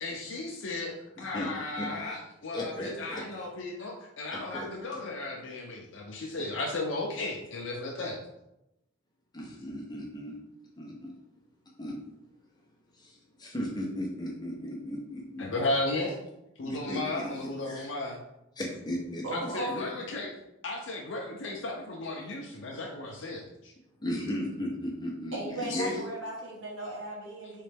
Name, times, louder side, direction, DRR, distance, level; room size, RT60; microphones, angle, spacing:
voice 1, 0.0-8.2 15.4-16.1 16.6-18.2 19.3-20.3 20.6-23.7 25.7-25.8, left 2 dB, 75° left, -1 dB, 0.6 m, -35 dB
voice 2, 1.2-1.5 1.8-2.2 2.5-3.2 4.3-5.0 9.3-10.4 10.8-11.1 11.8-12.0 13.0-15.5 16.6-17.9 18.6-19.8 24.0-26.0, left 1 dB, 20° left, -2 dB, 0.8 m, -36 dB
voice 3, 19.2-19.8 25.3-27.6, right 1 dB, 75° right, -3 dB, 1.4 m, -36 dB
4.0 x 3.3 x 3.4 m, 0.89 s
head